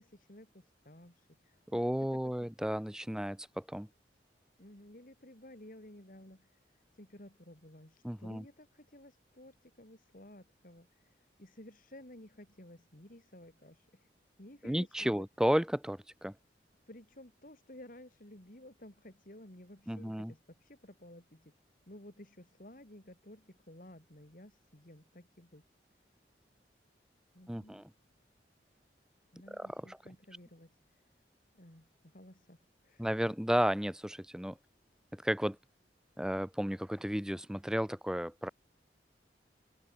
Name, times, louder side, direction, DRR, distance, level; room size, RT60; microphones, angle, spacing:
voice 1, 0.0-1.8 2.1-2.2 4.6-14.1 14.4-15.3 16.9-21.5 21.9-25.6 27.3-27.9 29.3-31.0 31.5-33.1, left 1 dB, 50° left, 3.7 m, -54 dB
voice 2, 1.7-3.9 8.0-8.4 14.6-16.3 19.9-20.3 27.5-27.9 29.6-30.0 33.0-34.6 35.1-35.6 36.2-38.5, equal, 5° right, 0.6 m, -33 dB
head